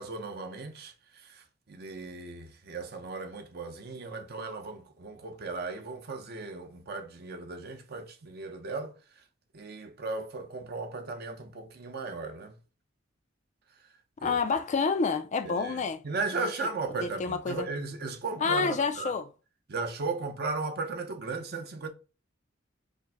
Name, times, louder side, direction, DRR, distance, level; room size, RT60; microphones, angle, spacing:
voice 1, 0.0-8.9 9.5-12.6 14.2-14.4 15.4-19.1 19.7-21.9, right 3 dB, 55° right, 0.7 m, -36 dB
voice 2, 14.2-16.0 16.4-16.5 17.0-17.7 18.4-19.3, left 5 dB, 40° left, 0.4 m, -28 dB
5.2 x 2.1 x 3.4 m
head